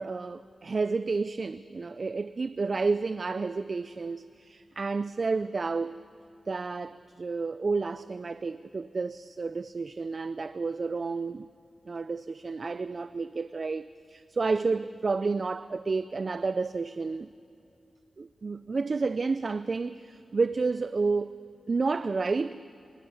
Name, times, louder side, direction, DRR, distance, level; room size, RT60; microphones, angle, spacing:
voice 1, 0.0-6.0 6.5-11.5 11.9-17.3 18.2-21.3 21.7-22.6, right 4 dB, 50° right, 0.5 m, -30 dB
28.0 x 26.0 x 7.2 m
cardioid pair, 65°, 0 cm